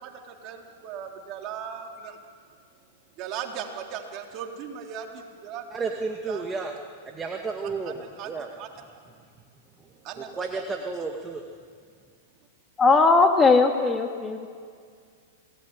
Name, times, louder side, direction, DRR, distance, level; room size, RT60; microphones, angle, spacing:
voice 1, 0.0-2.2 3.2-5.7 6.3-6.8 7.9-8.3 8.6-8.7 10.0-10.6, right 8 dB, 40° right, 2 dB, 3.9 m, -38 dB
voice 2, 5.7-6.7 7.1-7.9 8.2-8.5 10.3-11.4, right 4 dB, 15° right, 2 dB, 2.2 m, -31 dB
voice 3, 12.8-14.5, left 3 dB, 15° left, 4 dB, 2.4 m, -19 dB
26.5 x 19.0 x 10.0 m, 2.1 s
hypercardioid pair, 115°, 0 cm